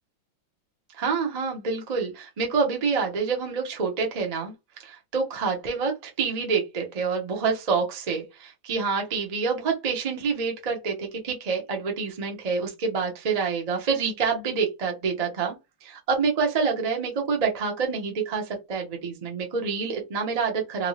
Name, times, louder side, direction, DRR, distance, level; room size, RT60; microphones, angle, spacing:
voice 1, 1.0-4.5 4.8-15.5 15.8-20.9, right 5 dB, 50° right, 0.4 m, -27 dB
3.1 x 2.7 x 3.1 m
omnidirectional pair, 2.0 m